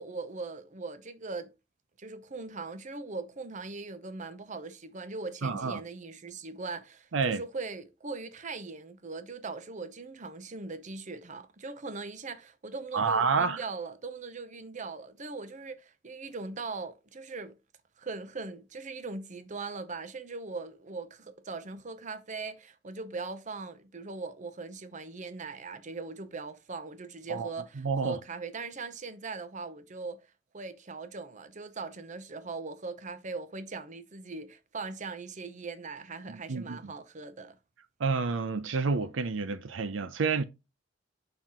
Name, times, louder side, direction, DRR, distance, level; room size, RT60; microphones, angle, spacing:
voice 1, 0.0-1.5 2.0-17.6 18.0-30.3 30.5-37.6, right 3 dB, 40° right, 0.7 m, -40 dB
voice 2, 5.4-5.8 7.1-7.4 12.9-13.6 27.3-27.5 27.8-28.2 36.3-36.8 38.0-40.4, right 4 dB, 75° right, 0.6 m, -29 dB
6.9 x 5.6 x 2.9 m
head